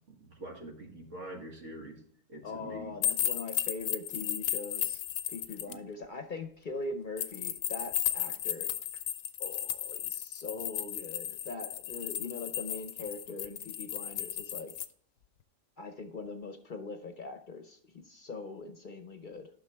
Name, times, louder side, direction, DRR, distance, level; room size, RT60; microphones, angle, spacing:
voice 1, 0.1-2.0 2.3-2.9 5.7-5.8, right 1 dB, 70° right, 1 dB, 2.0 m, -45 dB
voice 2, 2.4-5.0 5.3-8.7 9.4-14.7 15.8-19.5, left 3 dB, 45° left, 7 dB, 0.8 m, -42 dB
sound 1, 3.0-5.7 7.2-14.9, left 10 dB, 85° left, 1.0 m, -34 dB
9.4 x 6.3 x 3.4 m, 0.63 s
omnidirectional pair, 1.3 m